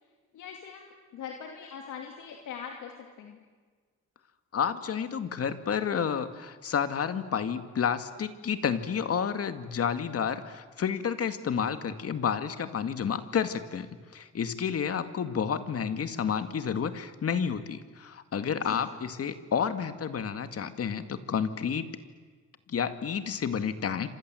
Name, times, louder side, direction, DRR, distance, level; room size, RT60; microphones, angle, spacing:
voice 1, 0.3-3.4 18.6-18.9, left 7 dB, 85° left, 2 dB, 2.7 m, -42 dB
voice 2, 4.5-13.9 14.1-21.9 22.7-24.1, left 7 dB, 50° left, 9 dB, 2.0 m, -30 dB
29.5 x 26.0 x 7.8 m, 1.5 s
cardioid pair, 90°, 30 cm